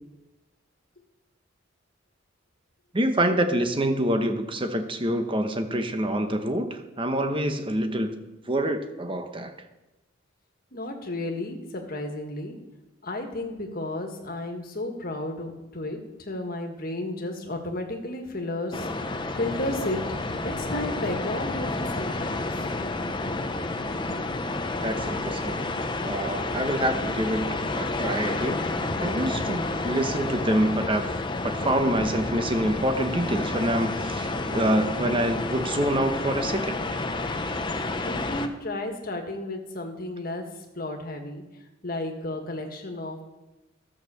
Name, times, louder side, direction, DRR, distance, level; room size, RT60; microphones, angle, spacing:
voice 1, 2.9-8.2 8.5-9.5 24.8-25.6 26.0-28.6 29.0-31.1 31.4-36.8, right 1 dB, 25° right, 7 dB, 1.0 m, -26 dB
voice 2, 10.7-12.6 13.0-16.0 16.3-22.5 38.0-40.4 40.7-41.4 41.8-43.2, left 2 dB, 50° left, 3 dB, 1.7 m, -33 dB
sound 1, 18.7-38.5, left 2 dB, 25° left, 0.7 m, -30 dB
13.5 x 6.4 x 6.9 m, 1.0 s
head